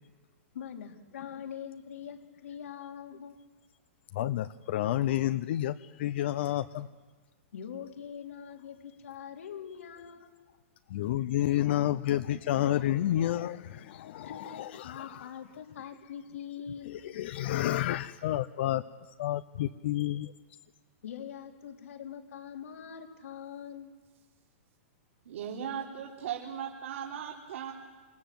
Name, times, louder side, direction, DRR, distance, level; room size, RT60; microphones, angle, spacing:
voice 1, 0.5-3.4 7.5-10.3 14.2-17.0 21.0-23.9, left 8 dB, 90° left, 3 dB, 3.5 m, -43 dB
voice 2, 4.1-6.9 10.9-15.2 16.9-18.8 19.2-20.3, left 13 dB, 55° left, 11 dB, 0.8 m, -30 dB
voice 3, 25.3-27.7, right 8 dB, 70° right, -2 dB, 3.7 m, -37 dB
27.0 x 26.0 x 7.8 m, 1.4 s
supercardioid pair, 165°, 7 cm